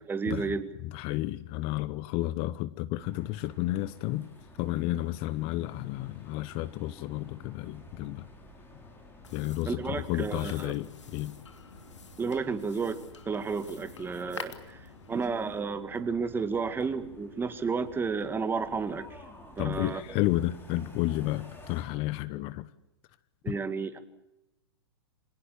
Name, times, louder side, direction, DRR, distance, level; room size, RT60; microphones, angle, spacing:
voice 1, 0.1-0.7 9.7-10.7 12.2-13.0 13.3-19.2 19.6-20.0 23.4-24.0, right 5 dB, 15° right, 10 dB, 2.1 m, -32 dB
voice 2, 0.8-4.3 4.6-8.3 9.3-11.3 19.6-22.7 23.5-23.6, left 16 dB, 40° left, 17 dB, 0.9 m, -31 dB
sound 1, 3.0-21.8, left 1 dB, 15° left, 5.5 m, -52 dB
sound 2, 9.2-15.6, left 5 dB, 85° left, 2.8 m, -48 dB
26.5 x 18.5 x 8.6 m, 0.91 s
hypercardioid pair, 110°, 15 cm